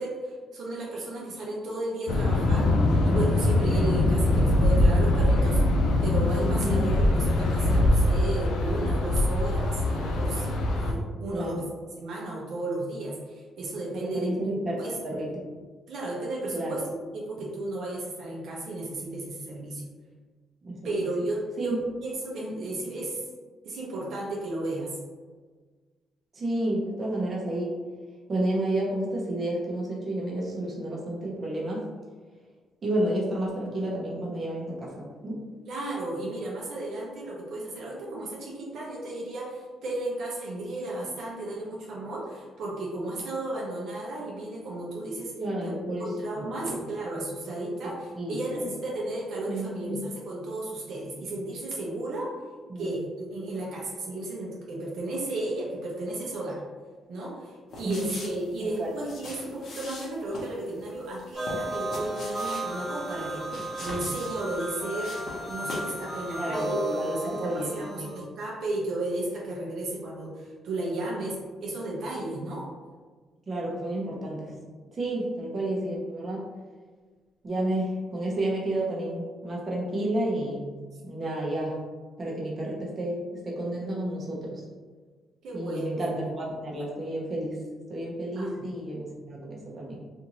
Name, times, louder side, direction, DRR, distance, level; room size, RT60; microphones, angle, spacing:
voice 1, 0.0-2.7 3.0-5.6 6.0-11.6 12.0-14.3 14.8-15.0 15.9-16.8 17.1-19.9 20.8-23.2 23.6-25.0 35.6-45.3 45.6-52.3 52.8-56.6 57.1-65.2 65.5-72.7 85.4-85.9 88.4-88.6, right 2 dB, 70° right, -4 dB, 0.7 m, -34 dB
sound 1, 2.1-10.9, left 1 dB, 80° left, 0.4 m, -23 dB
voice 2, 6.4-6.8 11.3-11.6 13.9-15.4 16.5-16.7 20.6-21.1 21.6-21.8 26.3-27.7 28.3-31.8 32.8-35.4 45.4-46.8 48.2-48.7 49.5-50.0 52.7-53.0 57.8-58.1 58.6-58.9 66.4-68.1 73.5-74.5 74.9-76.5 77.4-80.6 81.0-81.8 82.2-84.6 85.5-87.6 87.9-90.0, right 1 dB, 40° right, -4 dB, 0.8 m, -31 dB
sound 2, 57.7-66.0 66.3-66.4, left 2 dB, 60° left, 0.8 m, -41 dB
sound 3, 61.3-68.2, right 1 dB, 5° left, 1.0 m, -34 dB
2.6 x 2.5 x 2.9 m, 1.4 s
cardioid pair, 90°, 0 cm